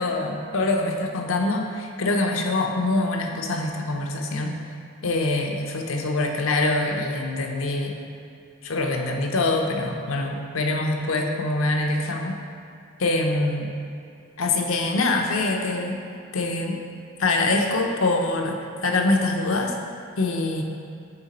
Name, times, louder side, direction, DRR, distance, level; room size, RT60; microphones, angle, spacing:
voice 1, 0.0-4.6 5.0-8.0 8.6-12.4 13.0-13.7 14.4-16.0 16.3-16.8 17.2-19.8 20.2-20.6, left 2 dB, 85° left, 2 dB, 0.7 m, -24 dB
7.8 x 3.2 x 4.2 m, 2.5 s
head